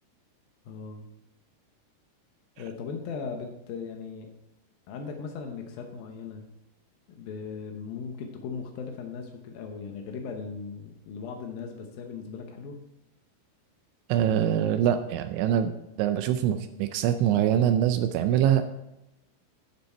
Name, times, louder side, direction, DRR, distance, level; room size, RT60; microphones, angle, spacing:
voice 1, 0.7-1.1 2.6-4.3 4.9-6.4 7.1-12.8, left 5 dB, 90° left, 3 dB, 2.0 m, -38 dB
voice 2, 14.1-15.7 16.0-18.6, right 10 dB, 85° right, 9 dB, 2.7 m, -24 dB
12.5 x 7.3 x 4.4 m, 0.91 s
omnidirectional pair, 5.7 m